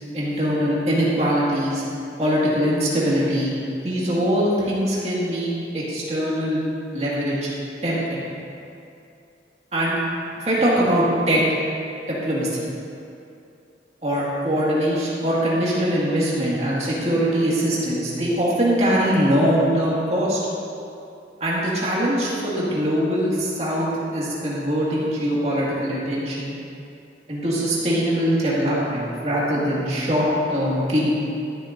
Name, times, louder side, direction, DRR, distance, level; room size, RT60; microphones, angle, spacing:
voice 1, 0.1-1.8 2.2-3.5 3.8-6.6 6.9-7.5 7.8-8.3 9.7-10.0 10.4-11.4 12.1-12.7 14.0-20.4 21.4-26.6 27.3-31.1, equal, 35° right, -7 dB, 2.1 m, -22 dB
13.0 x 7.9 x 2.7 m, 2.6 s
head